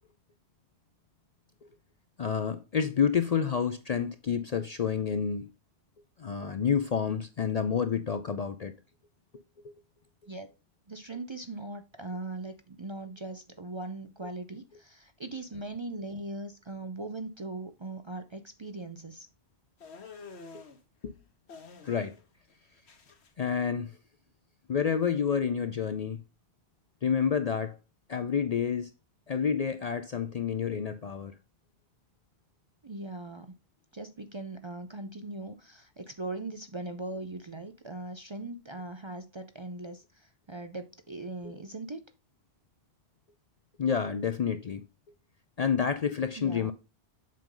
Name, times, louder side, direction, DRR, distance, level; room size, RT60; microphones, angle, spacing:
voice 1, 2.2-5.5 6.2-8.7 21.0-21.1 21.8-22.1 23.4-23.9 24.7-26.2 27.0-27.8 28.1-28.9 29.3-31.3 41.4-41.5 43.8-44.8 45.6-46.7, left 7 dB, 50° left, 0.5 m, -29 dB
voice 2, 10.9-19.3 32.8-33.6 33.9-42.0 46.4-46.7, right 2 dB, 35° right, 0.5 m, -40 dB
sound 1, 19.8-20.8 21.5-22.2 22.5-23.3, left 4 dB, 80° left, 1.4 m, -48 dB
7.5 x 5.2 x 3.8 m
omnidirectional pair, 1.1 m